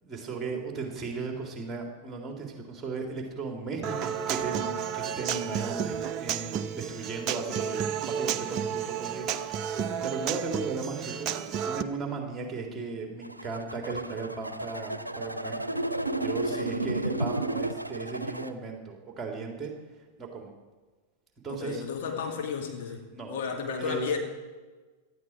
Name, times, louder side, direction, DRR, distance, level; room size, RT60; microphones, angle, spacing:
voice 1, 0.0-9.3 9.5-15.6 16.2-19.7 20.2-20.5 21.4-21.8 23.1-24.2, right 4 dB, 15° right, 2 dB, 3.5 m, -36 dB
Human voice / Acoustic guitar, 3.8-11.8, right 8 dB, 35° right, 0.8 m, -32 dB
sound 1, 13.2-18.5, right 2 dB, 90° right, 0.7 m, -32 dB
voice 2, 21.5-23.0 23.3-24.2, left 6 dB, 55° left, 2 dB, 2.5 m, -33 dB
18.0 x 13.0 x 4.8 m, 1.3 s
figure-of-eight pair, 95°, 0 cm